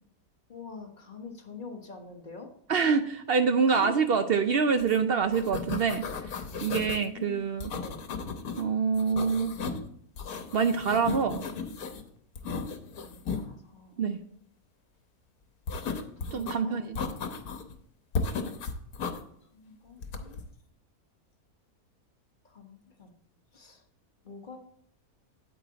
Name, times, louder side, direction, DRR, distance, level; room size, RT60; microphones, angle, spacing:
voice 1, 0.5-2.5 3.7-3.9 6.8-8.0 13.0-13.9 16.2-16.8 19.5-20.4 22.4-23.1 23.5-23.8 24.2-24.6, left 4 dB, 35° left, 3 dB, 1.4 m, -45 dB
voice 2, 2.7-6.0 6.6-7.7 8.6-9.6 10.5-11.4 14.0-14.2 16.3-17.1, right 5 dB, 65° right, 9 dB, 0.6 m, -26 dB
sound 1, 4.8-5.0 5.2-7.0 7.6-8.6 8.9-9.9 10.2-12.0 12.4-13.4 15.7-16.5 17.0-17.7 18.1-19.2 20.0-20.4, left 4 dB, 80° left, 1.5 m, -35 dB
9.0 x 8.6 x 4.0 m, 0.63 s
omnidirectional pair, 1.6 m